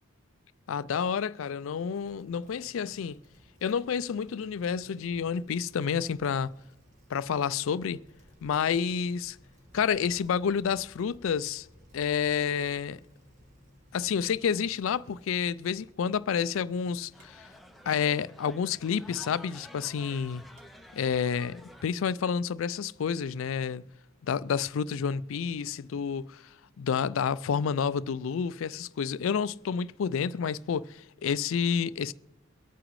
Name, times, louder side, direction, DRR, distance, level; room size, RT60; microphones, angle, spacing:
voice 1, 0.7-3.2 3.6-6.5 7.1-8.0 8.4-9.4 9.7-11.7 11.9-13.0 13.9-17.5 17.9-20.4 20.9-23.8 24.2-32.1, left 7 dB, 70° left, 0.4 m, -29 dB
Bicycle, 1.8-21.8, equal, 35° right, 1.4 m, -60 dB
sound 1, 12.8-23.7, left 1 dB, 85° right, 2.9 m, -65 dB
sound 2, 16.9-21.8, equal, ahead, 0.5 m, -51 dB
23.5 x 8.8 x 3.1 m
head